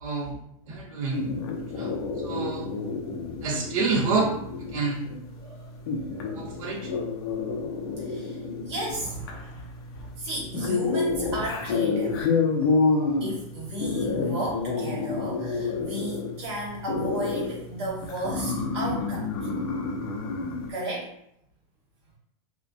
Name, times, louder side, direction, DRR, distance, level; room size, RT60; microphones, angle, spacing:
voice 1, 0.0-0.4 0.7-1.3 1.8-1.9 2.2-2.7 3.4-4.3 4.7-5.0 6.3-6.9, right 4 dB, 65° right, -2 dB, 0.6 m, -27 dB
sound 1, 1.1-20.7, left 4 dB, 45° left, 0.4 m, -29 dB
voice 2, 1.5-3.1 5.4-6.5 8.0-9.7 10.0-12.2 13.2-19.8 20.7-21.1, right 1 dB, 50° right, -3 dB, 1.0 m, -35 dB
2.4 x 2.1 x 2.6 m, 0.74 s
supercardioid pair, 180°, 18 cm